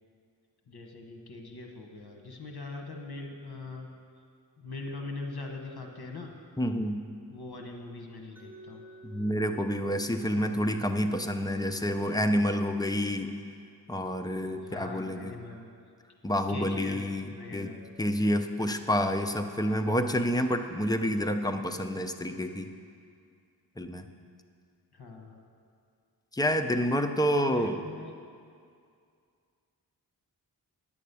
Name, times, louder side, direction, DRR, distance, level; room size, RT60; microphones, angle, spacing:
voice 1, 0.7-3.9 4.6-6.3 7.3-8.8 14.6-15.7 16.5-17.8 24.9-25.4 27.5-28.1, left 3 dB, 75° left, 3 dB, 1.3 m, -42 dB
voice 2, 6.6-7.0 9.0-13.3 13.9-15.4 16.2-17.7 18.0-22.7 23.8-24.1 26.3-27.8, equal, 10° left, 6 dB, 0.6 m, -28 dB
Mallet percussion, 8.4-14.2, right 3 dB, 5° right, 1.4 m, -55 dB
9.4 x 8.5 x 6.8 m, 2.3 s
wide cardioid pair, 95°, 38 cm